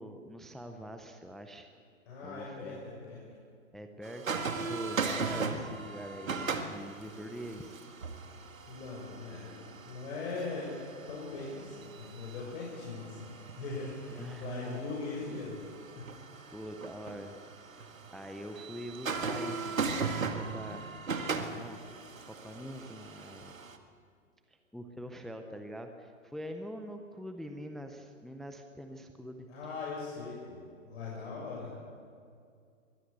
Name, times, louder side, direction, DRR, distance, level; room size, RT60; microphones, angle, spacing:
voice 1, 0.0-1.7 2.2-2.8 3.7-7.8 14.1-14.8 16.5-17.4 18.1-21.0 21.5-21.9 22.2-23.6 24.5-29.5, equal, ahead, 6 dB, 0.6 m, -44 dB
voice 2, 2.1-3.2 8.7-10.7 11.1-16.0 16.3-16.6 29.5-31.7, left 3 dB, 50° left, -5 dB, 6.3 m, -40 dB
sound 1, 4.0-23.8, right 4 dB, 90° right, 2.0 m, -38 dB
22.5 x 15.5 x 8.1 m, 2.3 s
hypercardioid pair, 130°, 39 cm